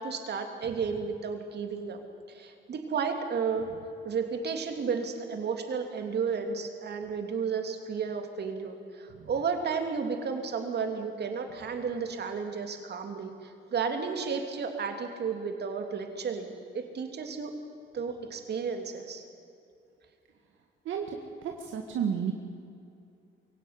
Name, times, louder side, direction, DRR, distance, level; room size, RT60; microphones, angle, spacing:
voice 1, 0.0-2.0 2.3-3.7 4.0-17.5 17.9-19.2, right 5 dB, 55° right, 5 dB, 3.1 m, -33 dB
voice 2, 20.9-22.3, right 7 dB, 75° right, 2 dB, 1.9 m, -32 dB
22.5 x 17.0 x 9.6 m, 2.6 s
cardioid pair, 90°, 20 cm